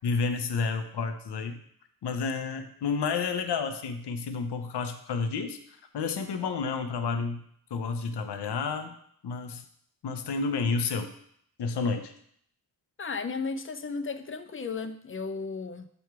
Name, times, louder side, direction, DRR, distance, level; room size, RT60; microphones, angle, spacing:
voice 1, 0.0-1.6 2.0-9.0 9.2-9.6 10.0-11.1 11.6-12.1, left 4 dB, 85° left, 7 dB, 0.7 m, -30 dB
voice 2, 13.0-15.9, left 4 dB, 30° left, 10 dB, 0.5 m, -34 dB
7.0 x 3.1 x 4.6 m, 0.67 s
cardioid pair, 60°, 39 cm